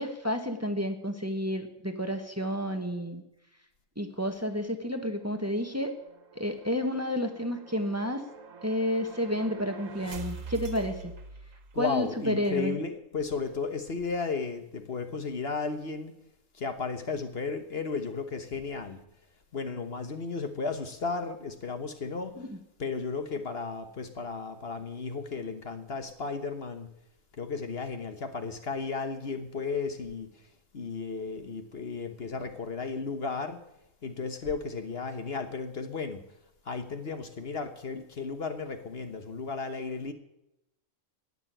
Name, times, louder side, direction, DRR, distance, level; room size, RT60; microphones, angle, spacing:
voice 1, 0.0-3.2 4.0-5.9 6.3-8.2 8.6-11.1 11.7-12.7 22.4-22.5, equal, 10° right, 6 dB, 1.3 m, -30 dB
sound 1, 5.2-12.0, right 4 dB, 85° right, 1.7 m, -45 dB
voice 2, 11.7-16.1 16.5-19.0 19.5-22.5 22.8-26.9 27.4-30.4 30.7-33.6 34.0-36.3 36.6-40.1, left 4 dB, 55° left, 8 dB, 1.3 m, -34 dB
18.0 x 6.9 x 9.0 m, 0.85 s
omnidirectional pair, 1.3 m